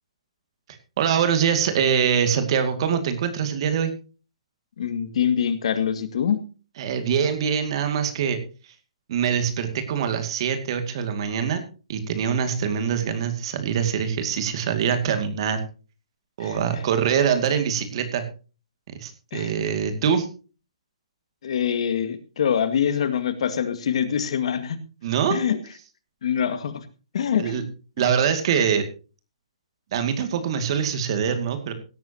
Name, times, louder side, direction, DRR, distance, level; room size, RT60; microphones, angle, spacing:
voice 1, 1.0-3.9 6.8-8.4 9.1-11.6 11.9-15.6 16.4-18.2 19.0-20.3 25.0-25.4 27.4-27.6 28.0-28.9 29.9-31.7, right 7 dB, 50° right, 8 dB, 2.3 m, -24 dB
voice 2, 4.8-6.4 16.4-16.8 19.3-19.7 21.4-24.8 25.3-25.6 26.2-26.8 27.1-27.6, left 8 dB, 65° left, 10 dB, 2.0 m, -24 dB
17.0 x 13.5 x 2.9 m, 0.34 s
hypercardioid pair, 145°, 3 cm